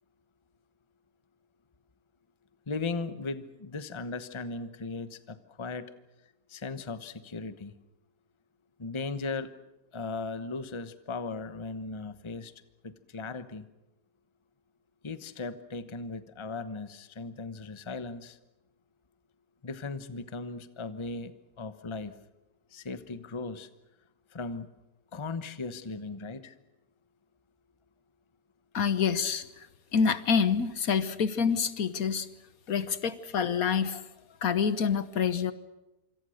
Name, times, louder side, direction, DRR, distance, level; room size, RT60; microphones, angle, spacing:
voice 1, 2.7-5.9 6.5-7.7 8.8-9.5 9.9-12.5 12.8-13.6 15.0-18.4 19.6-22.1 22.7-23.7 24.3-24.7 25.1-26.5, left 3 dB, 20° left, 12 dB, 0.9 m, -37 dB
voice 2, 28.7-29.4 29.9-32.3 32.7-34.0 34.4-35.5, left 6 dB, 65° left, 14 dB, 1.5 m, -27 dB
27.0 x 25.5 x 6.5 m, 0.99 s
omnidirectional pair, 1.7 m